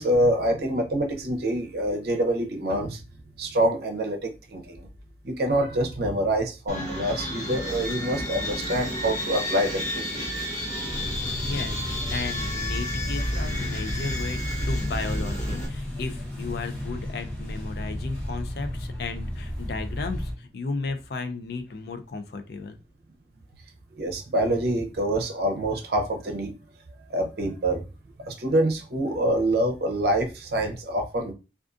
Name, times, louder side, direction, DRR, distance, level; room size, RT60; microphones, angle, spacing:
voice 1, 0.0-3.0 3.4-4.9 5.2-10.3 10.8-10.9 11.3-11.4 23.9-26.6 27.1-27.8 28.3-31.3, right 1 dB, 60° right, 0.6 m, -26 dB
sound 1, 6.7-15.7, equal, 40° left, 1.2 m, -31 dB
sound 2, 10.9-20.3, left 1 dB, 10° left, 0.8 m, -34 dB
voice 2, 11.4-22.8, left 4 dB, 60° left, 0.4 m, -34 dB
2.5 x 2.4 x 2.4 m
head